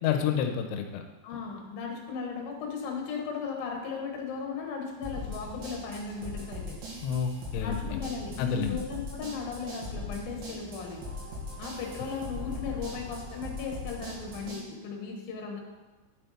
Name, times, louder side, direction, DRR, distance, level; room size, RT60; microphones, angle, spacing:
voice 1, 0.0-1.0 7.0-8.0 8.4-8.8, left 7 dB, 90° left, 5 dB, 3.0 m, -29 dB
voice 2, 1.2-6.8 7.6-11.0 11.6-15.6, left 5 dB, 65° left, 1 dB, 2.7 m, -36 dB
sound 1, 5.0-14.6, left 1 dB, 80° right, 4.5 m, -39 dB
11.0 x 5.6 x 4.2 m, 1.2 s
omnidirectional pair, 5.2 m